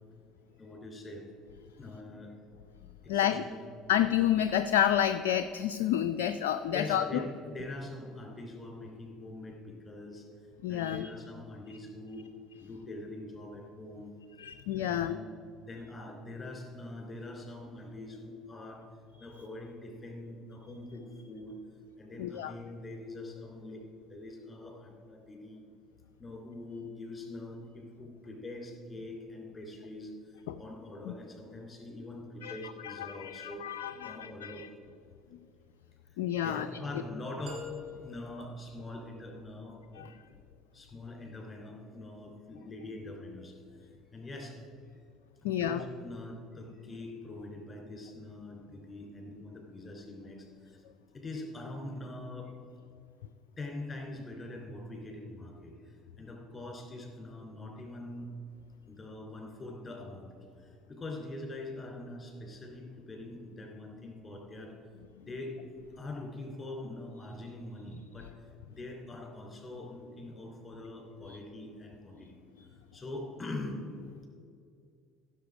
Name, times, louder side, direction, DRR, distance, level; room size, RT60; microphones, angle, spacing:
voice 1, 0.6-1.3 1.8-2.3 3.0-3.6 6.7-10.3 10.7-12.3 12.6-14.1 14.7-15.3 15.7-18.8 19.2-21.6 22.0-23.8 24.1-25.6 26.2-33.7 34.0-34.6 36.3-37.7 38.0-40.1 40.7-44.6 45.4-50.8 51.1-52.5 53.6-58.3 58.9-60.3 60.6-64.8 65.2-65.6 66.0-72.4 72.9-73.8, left 2 dB, 20° left, 1 dB, 3.0 m, -43 dB
voice 2, 3.1-3.4 3.9-7.2 10.6-11.1 14.4-15.2 22.2-22.5 30.5-30.6 31.1-31.2 32.4-34.7 36.2-36.7 40.0-40.1 45.4-45.8 65.2-65.3 71.3-71.4, left 10 dB, 65° left, 9 dB, 0.3 m, -30 dB
sound 1, 37.5-39.5, left 4 dB, 45° right, 2.6 m, -46 dB
15.0 x 6.9 x 4.9 m, 2.5 s
figure-of-eight pair, 60°, 0 cm